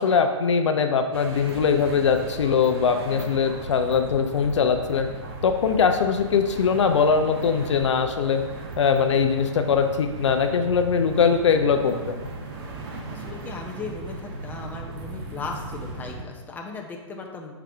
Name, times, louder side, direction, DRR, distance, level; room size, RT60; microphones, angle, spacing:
voice 1, 0.0-5.1 5.4-8.4 8.8-12.3, left 6 dB, 65° left, 6 dB, 0.5 m, -21 dB
sound 1, 1.1-16.2, right 2 dB, 45° right, 1.1 m, -37 dB
voice 2, 13.1-17.6, left 4 dB, 10° left, 1 dB, 0.7 m, -37 dB
5.9 x 4.8 x 3.4 m, 1.3 s
figure-of-eight pair, 120°, 16 cm